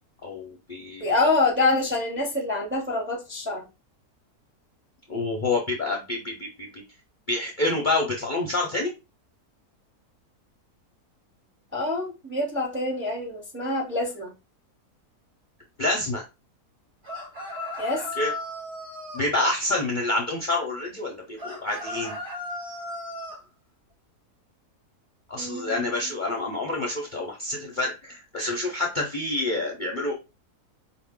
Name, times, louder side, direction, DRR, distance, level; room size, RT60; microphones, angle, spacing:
voice 1, 0.2-1.1 5.1-6.8 7.3-8.9 15.8-16.2 18.2-18.3 19.1-22.2 25.3-30.1, left 2 dB, 45° left, 0.6 m, -27 dB
voice 2, 1.0-3.6 11.7-14.3 17.8-18.1 25.3-26.0, left 2 dB, 10° right, 0.6 m, -26 dB
sound 1, 17.0-19.3 21.4-23.4, left 2 dB, 35° right, 1.6 m, -35 dB
4.9 x 2.1 x 3.6 m
omnidirectional pair, 1.7 m